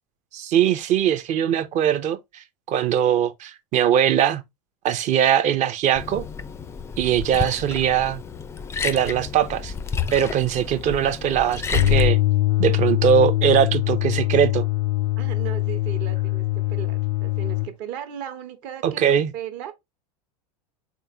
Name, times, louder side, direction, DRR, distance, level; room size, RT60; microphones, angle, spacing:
voice 1, 0.3-4.4 4.8-6.2 7.0-8.2 8.8-9.7 10.1-12.2 12.6-14.6 18.8-19.3, right 9 dB, 35° right, 0.6 m, -21 dB
Liquid, 5.9-12.1, left 5 dB, 15° left, 0.4 m, -30 dB
sound 1, 11.7-17.7, left 18 dB, 85° left, 0.4 m, -22 dB
voice 2, 15.2-19.7, right 9 dB, 55° right, 1.0 m, -36 dB
3.6 x 3.5 x 2.7 m
hypercardioid pair, 100°, 20 cm